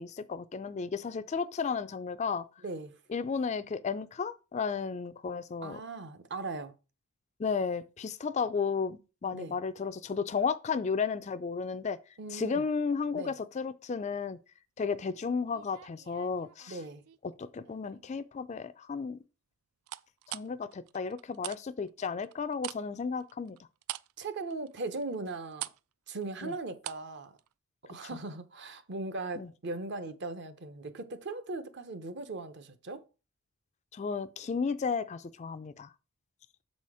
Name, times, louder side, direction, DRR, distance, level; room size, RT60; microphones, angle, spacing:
voice 1, 0.0-2.4 3.1-5.8 7.4-12.0 12.3-14.4 14.8-16.8 17.4-19.2 20.3-23.6 26.4-26.5 29.4-29.5 33.9-35.9, left 5 dB, 30° left, 0.3 m, -33 dB
voice 2, 2.6-3.0 5.6-6.7 9.3-9.6 12.2-12.7 13.1-13.3 16.7-17.0 24.2-25.7 26.1-27.4 27.9-33.0, right 3 dB, 50° right, 0.7 m, -39 dB
sound 1, 15.5-17.2 17.6-18.1 19.9-21.6 21.9-27.1 27.4-27.5, right 14 dB, 75° right, 0.3 m, -43 dB
7.1 x 4.2 x 4.7 m
head